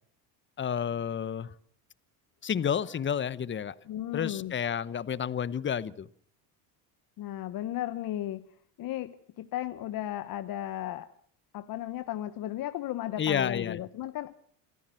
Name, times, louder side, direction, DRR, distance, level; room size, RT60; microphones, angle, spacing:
voice 1, 0.6-1.5 2.4-3.8 4.1-6.1 13.2-13.8, left 8 dB, 25° left, 1.0 m, -30 dB
voice 2, 3.9-4.5 7.2-8.5 8.8-11.1 11.5-14.3, left 13 dB, 50° left, 1.0 m, -35 dB
27.5 x 14.0 x 7.7 m
supercardioid pair, 100°, 43 cm